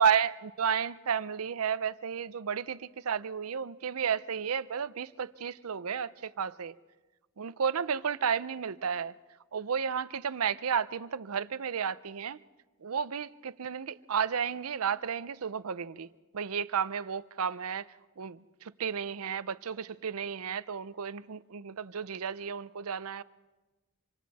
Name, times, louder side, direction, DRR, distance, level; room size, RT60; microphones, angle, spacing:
voice 1, 0.0-6.7 7.4-9.1 9.5-12.4 12.8-16.1 16.3-17.8 18.2-23.2, right 7 dB, 90° right, 0.6 m, -32 dB
26.0 x 26.0 x 4.2 m
head